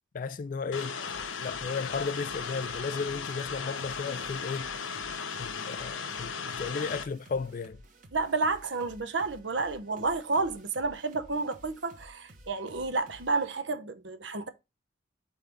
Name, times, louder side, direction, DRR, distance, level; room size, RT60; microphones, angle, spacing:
voice 1, 0.1-1.0 1.4-4.7 5.4-7.8, left 5 dB, 45° left, 0.3 m, -34 dB
sound 1, 0.7-7.0, left 5 dB, 90° left, 0.7 m, -36 dB
sound 2, 1.1-13.4, right 1 dB, 40° right, 1.2 m, -54 dB
voice 2, 8.1-14.5, right 3 dB, 70° right, 0.9 m, -30 dB
4.6 x 4.0 x 5.1 m
head